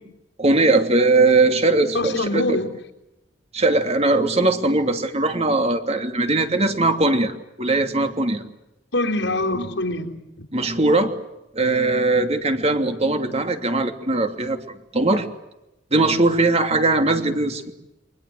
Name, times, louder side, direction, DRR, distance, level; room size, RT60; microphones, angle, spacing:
voice 1, 0.4-2.4 3.5-8.4 10.5-11.1 11.5-15.3 15.9-17.7, right 2 dB, 35° right, 6 dB, 2.8 m, -20 dB
voice 2, 1.9-2.7 8.9-10.2, left 2 dB, 90° left, -1 dB, 3.9 m, -24 dB
29.5 x 24.5 x 7.9 m, 0.92 s
head